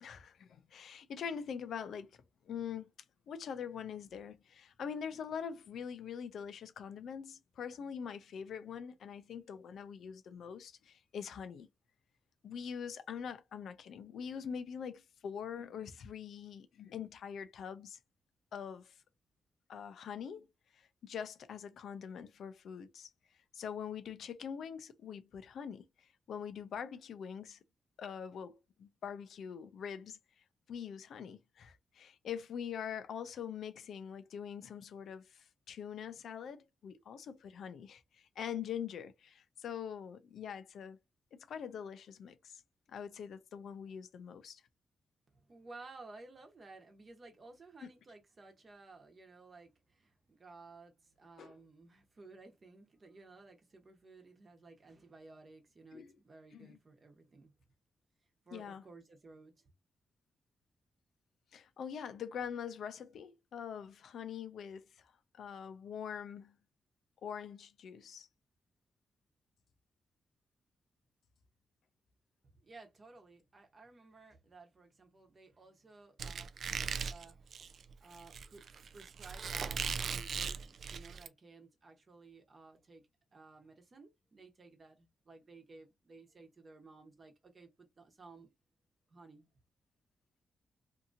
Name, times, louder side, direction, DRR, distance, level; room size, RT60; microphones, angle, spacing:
voice 1, 0.0-2.1 2.4-2.9 3.3-11.7 12.4-18.0 18.5-19.0 19.7-20.5 20.7-23.1 23.5-27.6 28.0-30.2 30.7-41.0 41.3-42.6 42.9-44.6 47.8-47.9 51.4-51.6 55.9-56.1 56.5-56.8 58.5-58.8 61.5-66.6 67.2-68.3, left 7 dB, 80° left, 0.4 m, -44 dB
voice 2, 45.3-57.5 58.4-59.7 72.6-88.5 89.1-89.5, right 3 dB, 40° right, 0.9 m, -56 dB
Squeak, 76.2-81.3, right 6 dB, 65° right, 0.3 m, -39 dB
2.8 x 2.6 x 2.5 m
cardioid pair, 100°, 0 cm